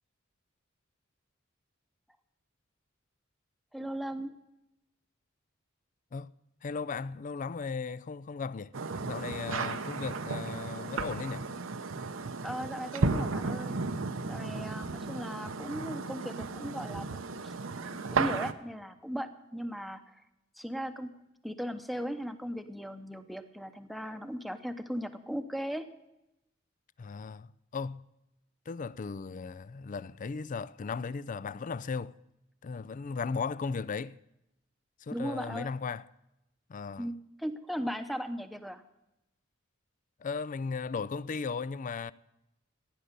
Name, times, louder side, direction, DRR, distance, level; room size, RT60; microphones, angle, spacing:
voice 1, 3.7-4.4 12.4-13.8 14.3-17.5 18.1-20.2 20.6-21.1 21.4-25.9 35.1-35.7 37.0-38.8, equal, ahead, 0.9 m, -37 dB
voice 2, 6.6-8.7 9.0-11.5 27.0-28.0 28.7-32.1 32.6-34.2 35.0-36.0 36.7-37.1 40.2-42.1, left 5 dB, 40° left, 0.4 m, -36 dB
sound 1, 8.7-18.5, right 4 dB, 75° right, 0.8 m, -34 dB
15.5 x 10.0 x 6.8 m
head